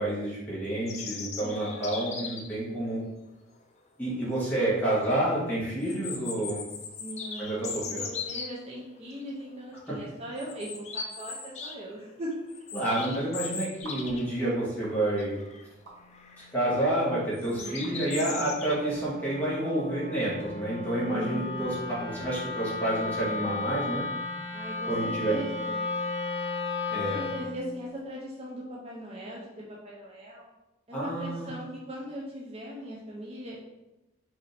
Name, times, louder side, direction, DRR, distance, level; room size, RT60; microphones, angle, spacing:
voice 1, 0.0-3.0 4.0-6.6 7.4-8.0 12.7-15.4 16.5-21.7 22.0-24.1 24.9-25.4 26.9-27.2 30.9-31.5, right 1 dB, 10° left, -8 dB, 1.4 m, -29 dB
sound 1, 0.9-2.6 4.1-4.2 4.6-4.7 5.8-8.5 9.2-9.5 9.8-9.9 10.4-11.7 12.1-14.4 14.7-14.8 15.2-15.6 16.1-16.5 17.3-18.7, left 5 dB, 35° left, 0.5 m, -38 dB
voice 2, 1.4-2.4 7.0-12.5 17.6-18.2 21.1-21.7 24.5-25.9 26.9-30.4 30.9-33.6, equal, 30° right, -4 dB, 0.6 m, -39 dB
sound 2, 12.9-13.1 13.8-14.3 14.8-15.0 15.9-16.0 16.9-17.0 17.8-17.9 18.7-18.8, right 3 dB, 70° right, 1.0 m, -45 dB
Wind instrument woodwind instrument, 16.0-27.6, left 3 dB, 65° left, 1.0 m, -35 dB
4.9 x 2.7 x 3.3 m, 0.98 s
head